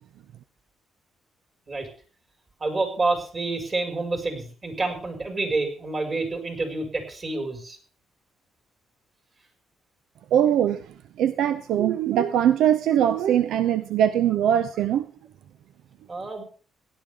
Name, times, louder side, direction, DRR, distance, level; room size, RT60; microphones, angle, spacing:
voice 1, 2.6-7.8 16.1-16.4, right 3 dB, 35° right, 5.4 m, -28 dB
voice 2, 10.3-15.1, right 10 dB, 80° right, 0.6 m, -22 dB
17.0 x 11.5 x 3.6 m
cardioid pair, 90°, 0 cm